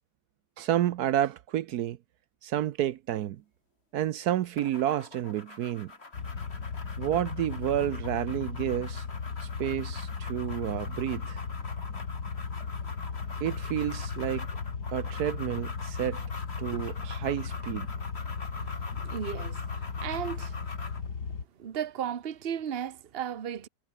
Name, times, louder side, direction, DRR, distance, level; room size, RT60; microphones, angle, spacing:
voice 1, 0.6-2.0 2.4-3.4 3.9-5.9 7.0-9.0 9.4-11.4 13.4-14.5 14.9-16.2 16.6-17.9, right 12 dB, 75° right, 1.2 m, -30 dB
sound 1, 4.6-21.1, left 3 dB, 40° left, 3.3 m, -45 dB
sound 2, 6.1-21.4, left 5 dB, 80° left, 2.8 m, -36 dB
voice 2, 19.0-20.6 21.6-23.7, right 9 dB, 40° right, 1.1 m, -35 dB
omnidirectional pair, 1.7 m